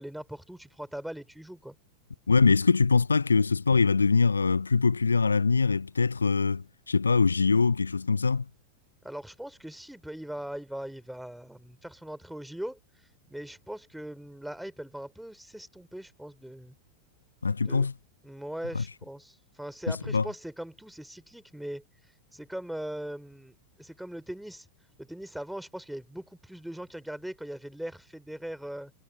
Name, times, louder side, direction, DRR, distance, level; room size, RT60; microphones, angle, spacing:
voice 1, 0.0-1.8 9.0-12.8 13.3-16.8 17.6-17.9 18.2-21.8 22.3-24.7 25.0-28.9, right 1 dB, ahead, 3.7 m, -40 dB
voice 2, 2.3-8.5 17.4-17.9 18.7-18.8 19.9-20.3, left 4 dB, 75° left, 0.7 m, -23 dB
figure-of-eight pair, 90°, 0 cm